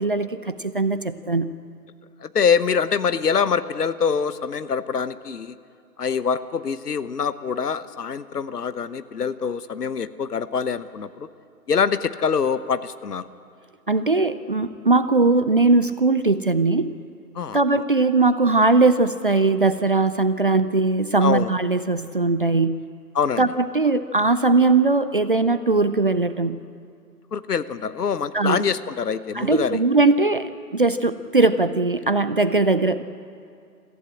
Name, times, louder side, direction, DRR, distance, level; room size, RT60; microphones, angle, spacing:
voice 1, 0.0-1.5 13.9-17.0 17.5-22.8 23.4-26.6 28.3-28.6 29.3-33.0, right 3 dB, 35° right, 12 dB, 0.4 m, -20 dB
voice 2, 2.2-5.5 6.0-11.3 11.7-13.3 17.3-17.6 21.2-21.5 23.1-23.5 27.3-29.8, left 6 dB, 70° left, 14 dB, 1.0 m, -24 dB
23.0 x 15.0 x 8.6 m, 2.4 s
figure-of-eight pair, 135°, 48 cm